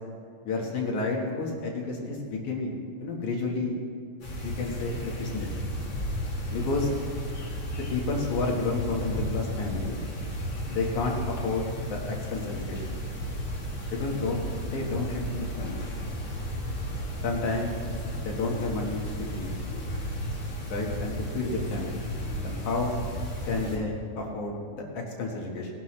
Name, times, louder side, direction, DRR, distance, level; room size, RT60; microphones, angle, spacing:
voice 1, 0.4-3.7 4.4-5.5 6.5-6.9 7.7-10.0 10.7-13.0 13.9-15.8 17.2-17.7 18.2-19.5 20.7-22.0 22.4-22.9 23.5-25.7, left 3 dB, 75° left, -1 dB, 2.9 m, -31 dB
sound 1, 4.2-23.8, equal, 40° left, 3.0 m, -34 dB
19.5 x 12.0 x 3.2 m, 2.4 s
omnidirectional pair, 3.4 m